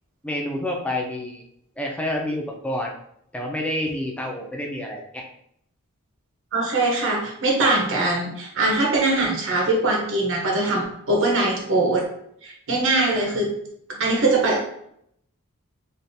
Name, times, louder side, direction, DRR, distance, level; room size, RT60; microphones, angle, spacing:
voice 1, 0.2-1.4 1.8-2.9 3.3-5.2, left 1 dB, 5° left, 0 dB, 0.5 m, -28 dB
voice 2, 6.5-12.1 12.4-13.6 13.9-14.7, right 2 dB, 60° right, -1 dB, 0.8 m, -22 dB
3.3 x 2.4 x 2.7 m, 0.71 s
head